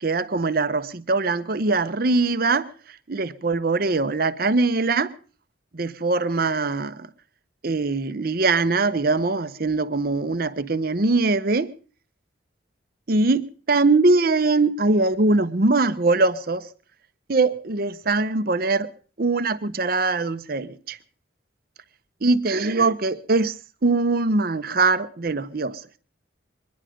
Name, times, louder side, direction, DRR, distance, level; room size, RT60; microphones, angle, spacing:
voice 1, 0.0-2.7 3.1-5.1 5.7-7.1 7.6-11.7 13.1-16.7 17.3-18.9 19.2-21.0 22.2-25.8, right 3 dB, 50° right, 0.7 m, -22 dB
22.5 x 10.5 x 5.0 m
head